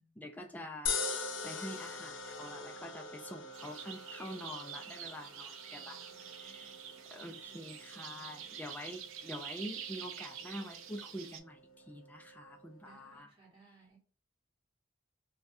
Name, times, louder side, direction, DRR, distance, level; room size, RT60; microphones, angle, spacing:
voice 1, 0.2-6.0 6.4-6.7 7.1-11.6 11.9-13.3, equal, 10° left, 0.4 m, -46 dB
sound 1, 0.9-13.2, left 4 dB, 75° left, 0.5 m, -44 dB
sound 2, 3.5-11.4, right 8 dB, 85° right, 0.4 m, -47 dB
voice 2, 5.7-6.9 7.1-8.6 12.8-14.0, right 3 dB, 30° right, 1.4 m, -64 dB
2.6 x 2.2 x 3.3 m
head